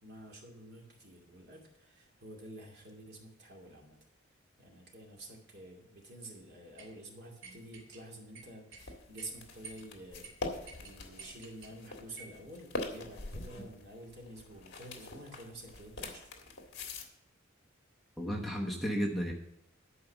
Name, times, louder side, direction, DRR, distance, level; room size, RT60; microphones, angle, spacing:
voice 1, 0.0-4.0 4.6-16.3, right 1 dB, 55° right, 0 dB, 2.4 m, -50 dB
sound 1, 6.8-6.9 7.4-8.0 8.3-8.9 9.2-9.3 9.6-9.9 10.2-10.3 10.7-11.7 12.2-12.4, right 4 dB, 75° right, 1.7 m, -51 dB
sound 2, 8.8-17.1, left 2 dB, 55° left, 1.7 m, -43 dB
voice 2, 18.2-19.3, equal, ahead, -3 dB, 1.1 m, -33 dB
11.5 x 4.8 x 7.3 m, 0.80 s
head